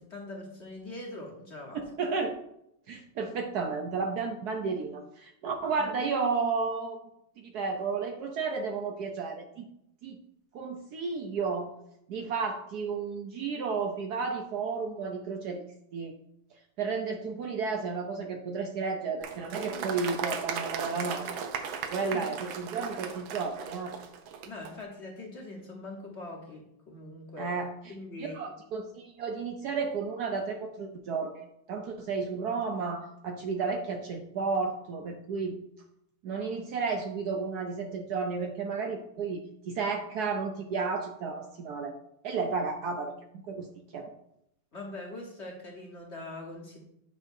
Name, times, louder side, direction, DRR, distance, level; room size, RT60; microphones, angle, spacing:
voice 1, 0.0-1.9 5.8-5.9 22.1-22.2 24.4-27.6 27.9-28.4 44.7-46.8, left 2 dB, 40° left, -1 dB, 1.2 m, -42 dB
voice 2, 1.7-2.4 2.9-7.0 7.4-9.7 10.0-10.2 10.5-11.7 12.1-15.6 15.9-16.1 16.8-21.4 21.9-23.9 27.4-27.7 28.2-35.6 36.2-41.9 42.2-44.1, right 4 dB, 65° right, 4 dB, 1.0 m, -32 dB
Applause, 19.2-24.7, right 7 dB, 85° right, 1.5 m, -37 dB
8.9 x 5.5 x 2.6 m, 0.77 s
omnidirectional pair, 2.1 m